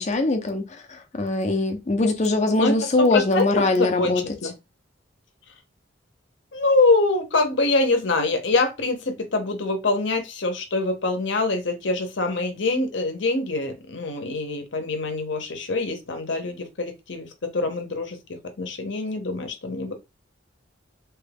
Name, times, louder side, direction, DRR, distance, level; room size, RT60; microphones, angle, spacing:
voice 1, 0.0-4.2, left 2 dB, 35° left, 0.6 m, -22 dB
voice 2, 2.6-4.5 6.5-18.2 18.6-19.9, left 3 dB, 65° left, 0.8 m, -24 dB
3.0 x 2.3 x 3.4 m
head